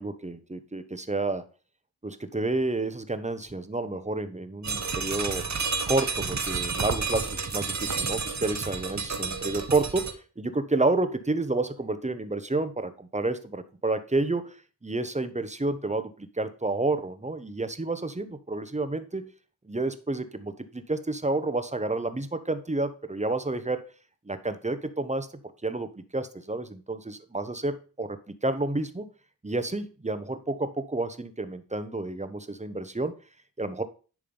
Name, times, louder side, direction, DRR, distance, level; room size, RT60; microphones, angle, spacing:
voice 1, 0.0-1.4 2.0-5.4 5.9-14.6 14.8-19.3 19.6-23.9 24.3-25.3 25.6-29.1 29.4-33.1 33.6-33.8, right 2 dB, 20° right, 11 dB, 1.0 m, -30 dB
sound 1, 4.6-10.1, right 5 dB, 45° right, 1.1 m, -30 dB
10.0 x 3.6 x 5.5 m, 0.37 s
cardioid pair, 55°, 38 cm